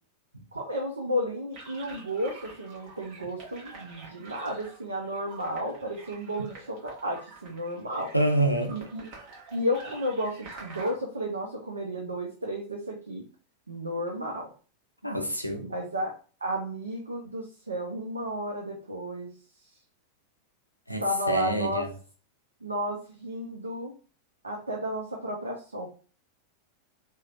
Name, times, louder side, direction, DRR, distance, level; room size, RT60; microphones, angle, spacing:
voice 1, 0.5-8.1 8.7-9.0 9.5-13.2 13.7-14.5 15.6-16.1 16.4-19.3 21.0-21.9 22.6-23.9 24.4-25.9, equal, 75° right, 0.5 m, -32 dB
sound 1, 1.5-10.9, right 3 dB, 40° right, 1.1 m, -47 dB
voice 2, 8.1-8.8 15.0-15.7 20.9-21.9, right 1 dB, 90° left, 0.4 m, -27 dB
3.1 x 2.1 x 2.4 m
figure-of-eight pair, 90°, 0 cm